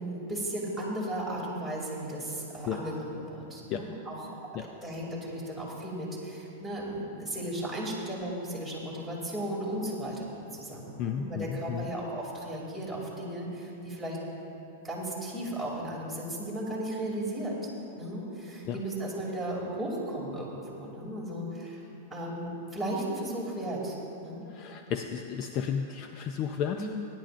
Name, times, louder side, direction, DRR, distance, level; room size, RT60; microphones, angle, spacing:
voice 1, 0.0-4.3 4.8-10.3 10.5-14.2 14.8-17.5 17.9-21.8 22.1-23.9 24.2-24.5 26.8-27.0, right 1 dB, 5° left, -5 dB, 2.7 m, -35 dB
voice 2, 11.0-11.9 18.7-18.8 24.5-26.9, left 8 dB, 40° left, 6 dB, 0.5 m, -33 dB
19.0 x 10.5 x 2.5 m, 3.0 s
supercardioid pair, 140°, 0 cm